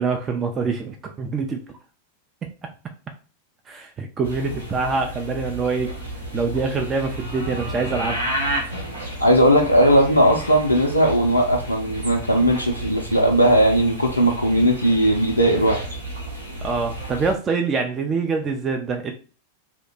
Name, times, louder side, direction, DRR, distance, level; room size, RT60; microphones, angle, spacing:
voice 1, 0.0-1.6 2.4-2.5 3.7-5.9 6.3-8.3 16.6-19.1, right 4 dB, 25° right, 4 dB, 0.4 m, -25 dB
sound 1, 4.2-17.3, right 1 dB, 85° right, 1.0 m, -32 dB
voice 2, 9.2-15.8, equal, 85° left, 2 dB, 0.4 m, -18 dB
2.7 x 2.1 x 3.8 m, 0.36 s
figure-of-eight pair, 90°, 0 cm